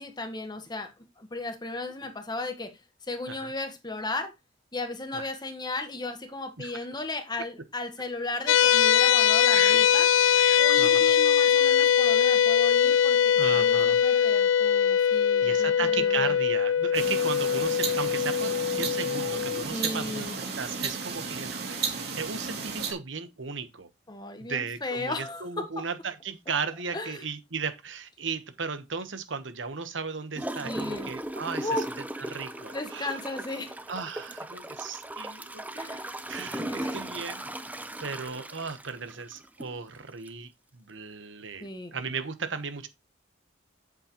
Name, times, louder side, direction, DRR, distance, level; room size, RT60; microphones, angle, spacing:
voice 1, 0.0-2.8 3.1-4.3 4.7-10.1 10.6-16.4 19.7-20.4 24.1-25.9 26.9-27.2 30.6-31.1 31.6-31.9 32.7-33.8 35.8-36.1 36.5-37.2 41.6-41.9, left 2 dB, 20° left, 1.4 m, -35 dB
sound 1, 8.5-19.6, left 8 dB, 75° left, 0.4 m, -22 dB
voice 2, 9.5-9.9 10.4-11.1 13.4-14.0 15.4-23.9 24.4-31.7 32.2-33.2 33.9-36.0 36.3-37.5 38.0-42.9, right 5 dB, 75° right, 1.1 m, -36 dB
sound 2, 16.9-22.9, right 5 dB, 55° right, 3.0 m, -34 dB
Gurgling / Toilet flush, 30.4-39.8 40.3-40.4, right 1 dB, 10° right, 0.7 m, -37 dB
8.4 x 7.8 x 3.0 m
head